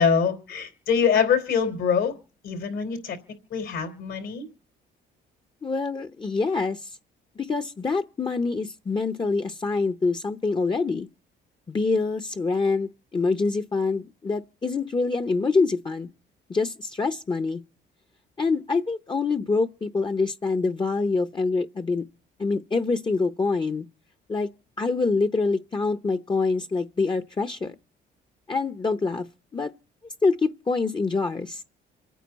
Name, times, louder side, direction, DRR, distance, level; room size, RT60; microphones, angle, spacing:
voice 1, 0.0-2.1 2.4-3.2 3.5-4.4, left 6 dB, 80° left, 3.8 m, -24 dB
voice 2, 5.6-6.9 7.4-11.1 11.7-16.1 16.5-17.6 18.4-22.0 22.4-23.9 24.3-24.5 24.8-27.7 28.5-29.3 29.5-29.7 30.2-31.6, left 4 dB, 25° left, 0.7 m, -25 dB
27.5 x 9.2 x 4.1 m
cardioid pair, 90°, 20 cm